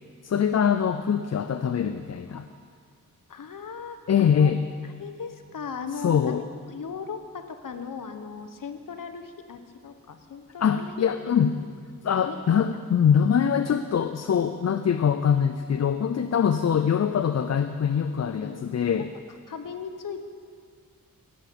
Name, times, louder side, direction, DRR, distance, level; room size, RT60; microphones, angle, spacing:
voice 1, 0.2-2.4 4.1-4.6 6.0-6.4 10.6-11.6 12.0-19.1, left 7 dB, 50° left, 9 dB, 0.5 m, -23 dB
voice 2, 3.3-4.5 5.0-11.7 12.3-12.8 18.1-19.1 19.5-20.3, left 5 dB, 65° left, 8 dB, 1.1 m, -38 dB
16.5 x 7.6 x 6.9 m, 2.1 s
cardioid pair, 75°, 35 cm